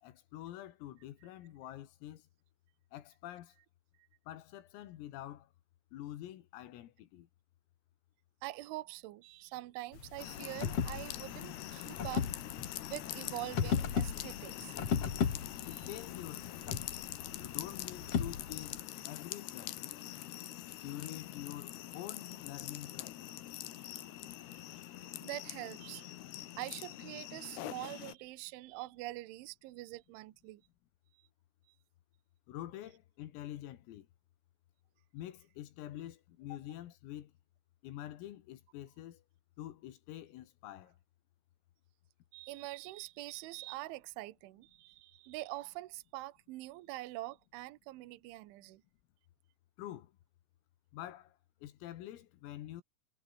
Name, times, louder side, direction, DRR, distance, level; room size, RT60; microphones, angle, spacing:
voice 1, 0.0-2.2 2.9-3.5 4.3-5.5 5.9-7.3 15.7-16.7 17.4-18.8 19.1-19.8 20.8-23.2 32.5-34.1 35.1-37.3 37.8-39.2 39.6-40.9 49.8-50.1 50.9-51.4 51.6-52.8, left 13 dB, 85° left, 4.6 m, -46 dB
voice 2, 8.4-12.3 12.9-14.8 24.7-24.8 25.2-26.1 26.6-30.6 42.3-48.8, right 18 dB, 75° right, 3.4 m, -44 dB
sound 1, 9.9-18.8, left 7 dB, 40° left, 2.3 m, -36 dB
sound 2, 10.2-28.2, left 14 dB, 65° left, 2.9 m, -44 dB
omnidirectional pair, 5.9 m